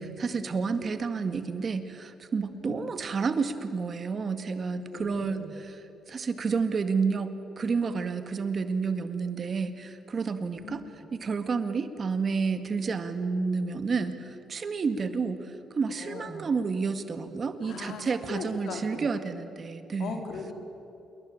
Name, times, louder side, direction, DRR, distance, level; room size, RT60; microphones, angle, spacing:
voice 1, 0.0-10.8 11.1-20.2, right 5 dB, 45° right, 9 dB, 2.0 m, -30 dB
voice 2, 2.5-2.9 4.9-5.5 10.4-10.9 15.9-16.4 17.6-19.0 20.0-20.5, left 4 dB, 75° left, 4 dB, 4.3 m, -39 dB
27.5 x 22.0 x 8.8 m, 2.9 s
cardioid pair, 90°, 0 cm